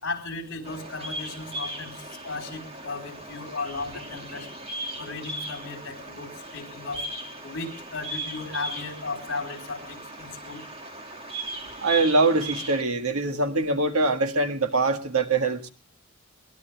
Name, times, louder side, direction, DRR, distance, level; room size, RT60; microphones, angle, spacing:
voice 1, 0.0-4.5 5.0-7.0 7.4-10.6, left 3 dB, 60° left, 4.4 m, -35 dB
Bird vocalization bird call bird song, 0.6-12.8, right 1 dB, 25° right, 2.4 m, -38 dB
voice 2, 11.8-15.7, right 3 dB, 80° right, 1.8 m, -23 dB
22.5 x 18.0 x 3.4 m
head